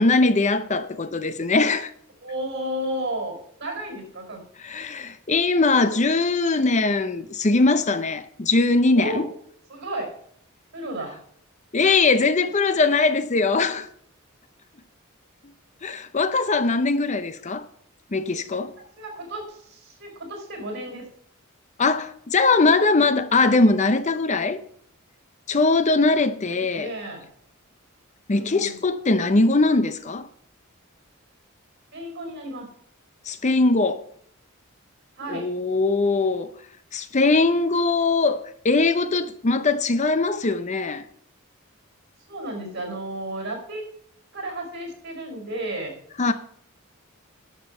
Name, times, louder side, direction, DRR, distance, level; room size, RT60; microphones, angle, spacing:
voice 1, 0.0-1.9 4.6-9.2 11.7-13.9 15.8-17.6 18.1-18.7 21.8-24.6 25.5-26.9 28.3-30.3 33.3-34.0 35.3-36.5 36.9-41.0 46.2-46.3, left 3 dB, 35° left, 0.6 m, -21 dB
voice 2, 2.2-4.4 8.9-9.3 9.7-10.2 10.7-11.2 19.0-21.0 26.5-27.3 28.3-28.8 31.9-32.7 35.2-35.5 42.3-43.9 44.3-45.9 46.3-46.4, right 1 dB, 55° right, 5.0 m, -33 dB
11.0 x 7.5 x 5.5 m
head